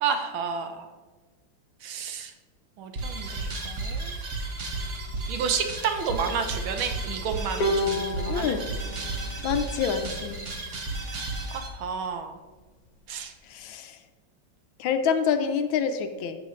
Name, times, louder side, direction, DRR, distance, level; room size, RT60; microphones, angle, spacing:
voice 1, 0.0-0.9 1.8-2.3 2.8-4.1 5.3-8.6 11.5-12.4 13.1-13.3, right 6 dB, 75° right, 7 dB, 1.6 m, -31 dB
sound 1, 2.9-11.7, right 2 dB, 40° right, 1.3 m, -33 dB
Bowed string instrument, 7.6-10.9, left 1 dB, 50° left, 1.4 m, -32 dB
voice 2, 8.3-8.7 9.4-10.4 13.5-14.0 14.8-16.4, left 7 dB, 75° left, 8 dB, 1.4 m, -27 dB
13.5 x 6.5 x 3.1 m, 1.3 s
omnidirectional pair, 2.3 m